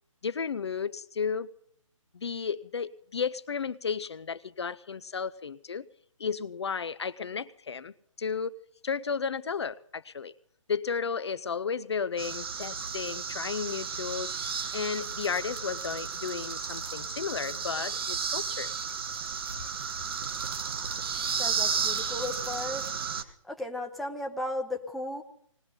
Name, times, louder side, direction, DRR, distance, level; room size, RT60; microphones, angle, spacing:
voice 1, 0.2-1.5 2.1-5.8 6.2-8.6 8.8-10.3 10.7-14.3 14.7-18.7, left 6 dB, 55° left, 14 dB, 0.6 m, -33 dB
sound 1, 12.2-23.2, right 6 dB, 45° right, 1.3 m, -33 dB
voice 2, 21.4-22.9 23.2-25.2, left 1 dB, ahead, 0 dB, 0.8 m, -35 dB
20.0 x 18.5 x 3.9 m, 0.63 s
figure-of-eight pair, 140°, 17 cm